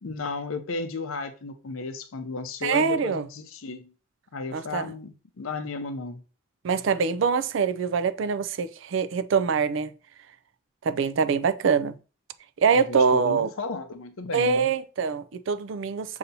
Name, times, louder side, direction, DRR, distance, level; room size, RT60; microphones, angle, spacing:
voice 1, 0.0-3.9 4.3-6.2 12.7-14.7, left 3 dB, 90° left, 0.6 m, -34 dB
voice 2, 2.6-3.2 4.5-4.9 6.6-9.9 10.8-12.0 12.6-13.5 14.3-16.2, right 5 dB, 70° right, 0.4 m, -24 dB
6.7 x 2.8 x 2.7 m
head